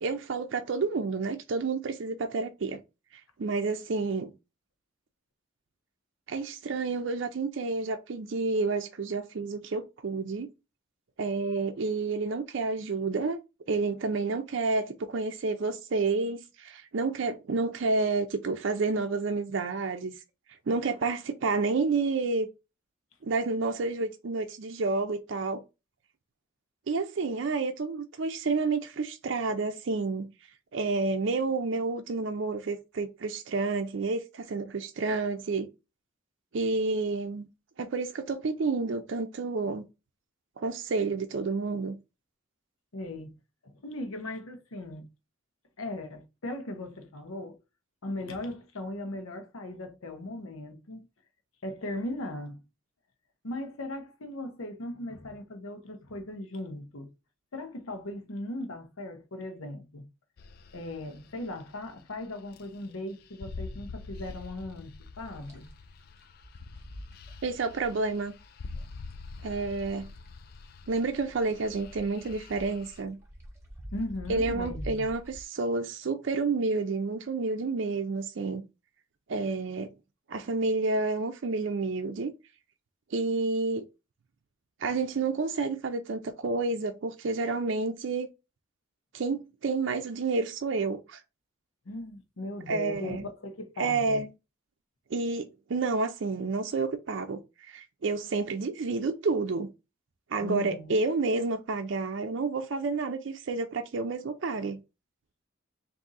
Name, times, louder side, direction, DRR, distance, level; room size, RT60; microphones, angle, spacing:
voice 1, 0.0-2.8 3.4-4.3 6.3-10.5 11.2-13.4 13.7-20.1 20.7-22.5 23.2-25.6 26.9-30.3 30.7-35.7 36.5-37.5 37.8-39.8 40.6-42.0 67.4-68.3 69.4-70.1 70.9-73.2 74.3-78.6 79.3-79.9 80.3-82.3 83.1-83.9 84.8-88.3 89.1-91.2 92.7-93.3 93.8-94.3 95.1-99.7 100.3-104.8, right 3 dB, 60° right, 0.4 m, -30 dB
voice 2, 42.9-43.3 43.6-45.1 45.8-47.6 48.0-51.1 51.6-52.6 53.4-57.1 57.5-60.1 60.7-65.7 73.9-75.1 91.8-94.2 100.4-100.9, left 1 dB, 90° left, 0.9 m, -38 dB
sound 1, 60.4-73.0, left 4 dB, 45° left, 0.3 m, -46 dB
sound 2, 65.2-70.0 70.3-75.4, equal, 15° right, 0.9 m, -45 dB
3.6 x 2.6 x 4.0 m
head